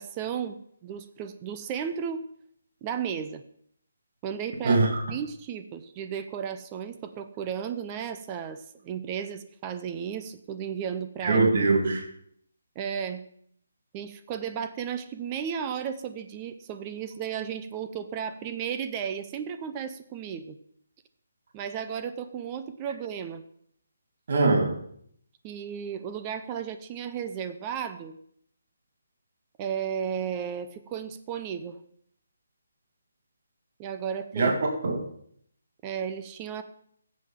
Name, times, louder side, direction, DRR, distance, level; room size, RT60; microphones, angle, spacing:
voice 1, 0.0-2.2 2.8-3.4 4.2-11.5 12.8-13.2 13.9-20.6 21.5-23.4 25.4-28.2 29.6-31.8 33.8-34.6 35.8-36.6, right 8 dB, 25° right, 0.6 m, -34 dB
voice 2, 4.6-5.0 11.2-12.0 24.3-24.8 34.3-34.5 34.8-35.0, right 3 dB, 55° right, 1.9 m, -22 dB
15.0 x 7.5 x 3.7 m
figure-of-eight pair, 155°, 0 cm